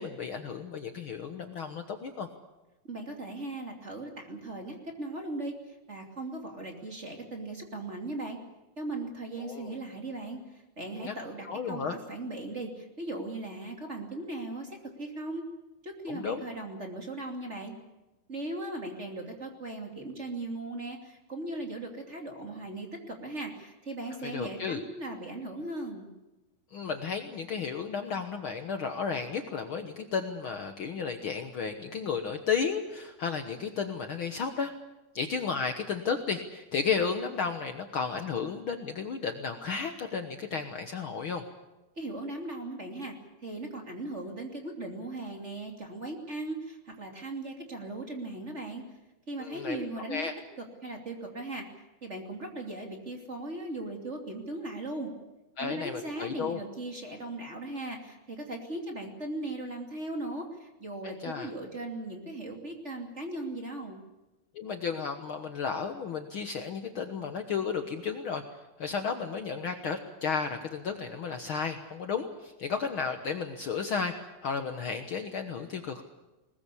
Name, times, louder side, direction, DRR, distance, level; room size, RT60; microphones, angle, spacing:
voice 1, 0.0-2.3 9.4-9.8 10.9-11.1 11.4-11.9 16.1-16.4 24.2-24.8 26.7-34.7 35.1-41.4 49.4-50.3 55.6-56.6 61.0-61.5 64.5-68.4 68.8-76.0, left 5 dB, 85° left, 6 dB, 1.1 m, -33 dB
voice 2, 2.8-8.4 8.8-15.4 15.8-17.7 18.3-26.1 42.0-43.1 43.4-48.8 49.3-50.3 50.6-51.6 52.0-55.1 55.6-64.0, right 2 dB, 20° right, 3 dB, 2.6 m, -38 dB
21.0 x 20.5 x 8.4 m, 1.0 s
omnidirectional pair, 4.2 m